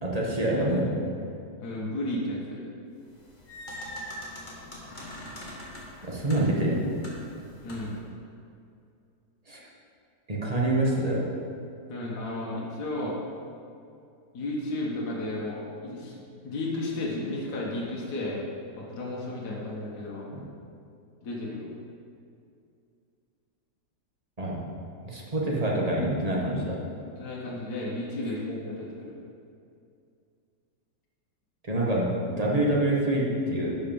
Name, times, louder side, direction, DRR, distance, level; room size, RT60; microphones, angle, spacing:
voice 1, 0.0-0.9 6.0-7.0 9.5-9.6 10.3-11.3 24.4-24.7 25.0-26.8 31.6-33.7, right 1 dB, 20° right, -3 dB, 1.4 m, -26 dB
voice 2, 1.6-2.6 7.6-8.0 11.9-13.2 14.3-16.2 16.4-18.4 18.7-20.3 21.2-21.8 27.2-29.1, left 1 dB, 60° left, -4 dB, 1.8 m, -33 dB
sound 1, 3.1-8.0, left 1 dB, 25° left, 1.5 m, -42 dB
11.5 x 5.1 x 5.3 m, 2.5 s
omnidirectional pair, 2.0 m